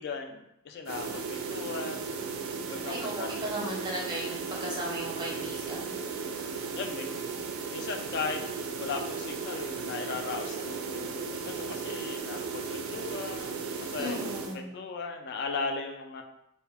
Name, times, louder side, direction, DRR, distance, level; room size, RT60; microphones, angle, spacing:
voice 1, 0.0-2.1 2.7-3.4 6.7-7.1 7.7-8.4 8.8-16.2, left 4 dB, 50° left, 4 dB, 0.3 m, -37 dB
sound 1, 0.8-14.6, right 5 dB, 80° right, 0.3 m, -36 dB
voice 2, 2.9-6.0 14.0-14.8, equal, 20° right, -3 dB, 0.5 m, -36 dB
2.1 x 2.1 x 3.3 m, 0.81 s
head